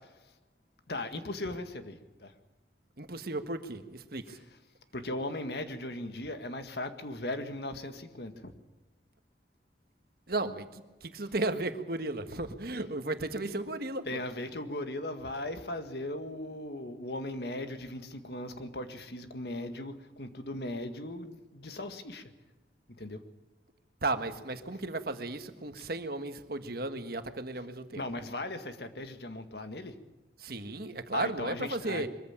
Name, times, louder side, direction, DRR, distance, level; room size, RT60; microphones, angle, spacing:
voice 1, 0.9-2.3 4.3-4.4 4.9-8.5 14.1-22.3 23.0-23.2 27.9-30.0 31.1-32.0, left 1 dB, 60° left, 8 dB, 1.9 m, -38 dB
voice 2, 3.0-4.4 10.3-14.2 24.0-28.0 30.4-32.1, right 2 dB, 55° right, 8 dB, 1.5 m, -35 dB
23.0 x 14.5 x 8.8 m, 1.2 s
head